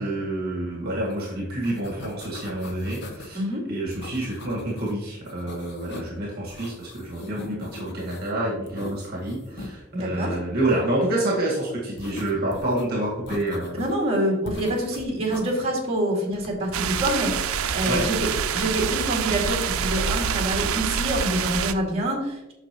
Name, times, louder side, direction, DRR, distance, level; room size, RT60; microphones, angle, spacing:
voice 1, 0.0-3.4 3.7-13.8 17.8-18.1, right 1 dB, 50° right, -3 dB, 1.8 m, -28 dB
sound 1, 1.1-1.3 1.5-3.4 3.9-4.9 5.3-6.2 6.5-8.3 8.7-9.7 12.0-12.9 13.3-14.0 14.4-15.5 16.3-16.8, left 2 dB, 55° left, 1.0 m, -40 dB
voice 2, 9.9-10.4 13.7-18.3 18.5-22.5, right 1 dB, 30° right, -2 dB, 2.1 m, -26 dB
sound 2, 16.7-21.7, right 7 dB, 85° right, 0.5 m, -26 dB
8.3 x 6.0 x 3.0 m, 0.95 s
head